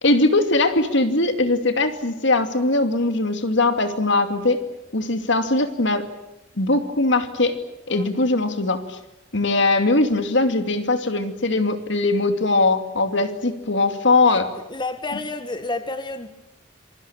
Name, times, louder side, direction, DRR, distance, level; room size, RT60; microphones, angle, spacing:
voice 1, 0.0-4.6 4.9-6.1 6.6-7.6 7.9-9.0 9.3-14.5, left 2 dB, 65° left, 8 dB, 2.6 m, -20 dB
voice 2, 14.7-16.3, left 2 dB, 25° left, 9 dB, 1.7 m, -30 dB
27.0 x 23.5 x 8.9 m, 0.88 s
head